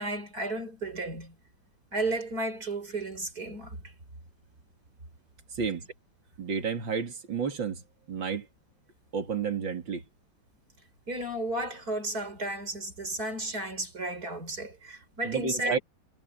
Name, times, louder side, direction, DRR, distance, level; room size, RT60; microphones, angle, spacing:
voice 1, 0.0-1.3 1.9-3.8 11.1-15.8, right 2 dB, 50° right, 6.2 m, -33 dB
voice 2, 6.4-7.8 8.1-8.4 9.1-10.0 15.2-15.8, right 6 dB, 85° right, 3.2 m, -31 dB
omnidirectional pair, 2.1 m